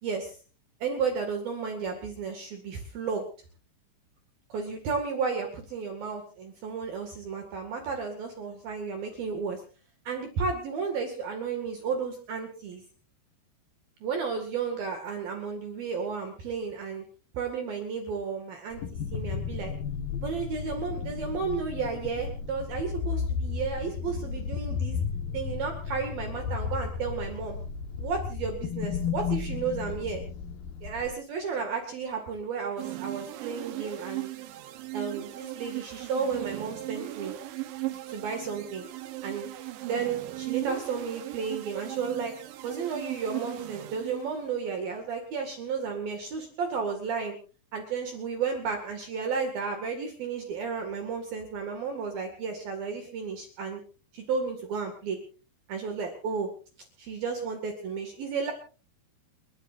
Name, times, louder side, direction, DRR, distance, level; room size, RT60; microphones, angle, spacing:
voice 1, 0.0-0.4 0.8-3.3 4.5-9.6 10.1-12.8 14.0-17.0 17.3-18.8 19.1-19.7 20.2-25.0 25.3-27.6 28.0-30.2 30.8-34.3 34.9-37.3 38.1-38.9 39.2-39.5 39.8-42.3 42.6-47.4 47.7-53.8 54.1-55.2 55.7-56.5 57.0-58.5, right 5 dB, 60° right, 4 dB, 3.6 m, -33 dB
sound 1, 18.7-31.1, left 6 dB, 60° left, 2.8 m, -33 dB
sound 2, 32.8-44.6, right 17 dB, 80° right, 3.4 m, -37 dB
29.5 x 14.0 x 2.6 m, 0.37 s
omnidirectional pair, 5.2 m